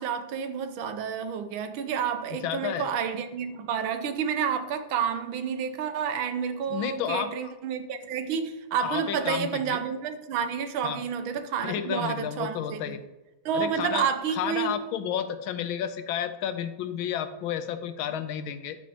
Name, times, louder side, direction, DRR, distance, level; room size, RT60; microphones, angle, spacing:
voice 1, 0.0-13.0 13.4-14.8, right 7 dB, 80° right, 1.6 m, -30 dB
voice 2, 2.3-2.9 6.7-7.5 8.8-9.8 10.8-11.1 11.6-13.0 13.5-18.8, left 9 dB, 85° left, 1.4 m, -31 dB
12.5 x 6.1 x 2.9 m
omnidirectional pair, 2.2 m